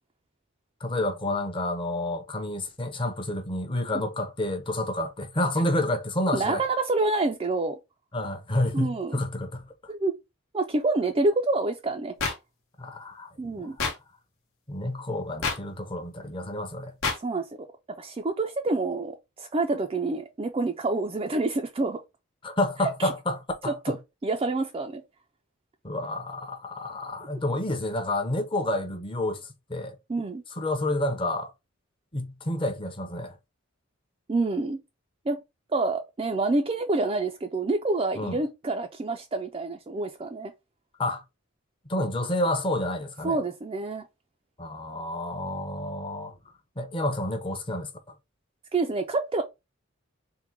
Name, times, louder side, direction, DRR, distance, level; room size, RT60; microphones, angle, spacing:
voice 1, 0.8-6.6 8.1-9.6 12.8-13.3 13.6-13.7 14.7-16.9 22.4-24.0 25.8-30.0 30.5-31.5 32.1-33.4 38.2-38.4 41.0-41.2 41.9-43.4 44.6-46.3 46.8-47.9, left 1 dB, 25° left, 0.7 m, -29 dB
voice 2, 6.3-7.8 8.7-9.2 9.9-10.1 10.5-12.1 13.4-13.8 17.2-17.6 18.0-22.0 23.0-23.1 23.7-24.0 24.2-25.0 30.1-30.4 34.3-34.8 35.3-35.4 35.7-40.5 43.2-44.0 48.7-49.4, right 3 dB, 25° right, 0.3 m, -27 dB
sound 1, 12.2-12.3 13.8-13.9 15.4-15.6 17.0-17.2, left 4 dB, 75° left, 1.0 m, -26 dB
3.7 x 2.1 x 4.4 m
head